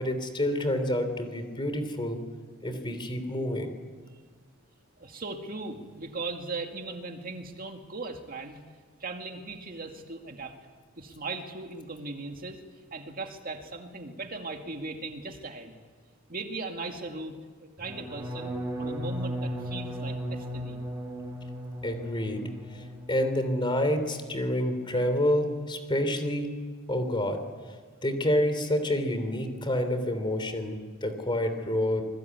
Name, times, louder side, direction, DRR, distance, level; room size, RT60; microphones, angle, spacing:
voice 1, 0.0-2.2 2.6-3.7 21.8-22.4 23.1-26.5 26.9-27.4 28.0-32.0, left 1 dB, 25° left, 8 dB, 3.3 m, -28 dB
voice 2, 5.0-8.6 9.0-10.6 11.0-12.6 12.9-15.7 16.3-17.3 17.6-20.8, right 3 dB, 45° right, 4 dB, 2.2 m, -38 dB
sound 1, 17.8-23.7 24.0-24.5 24.8-25.2, equal, 15° right, 6.8 m, -36 dB
26.5 x 21.0 x 9.5 m, 1.5 s
head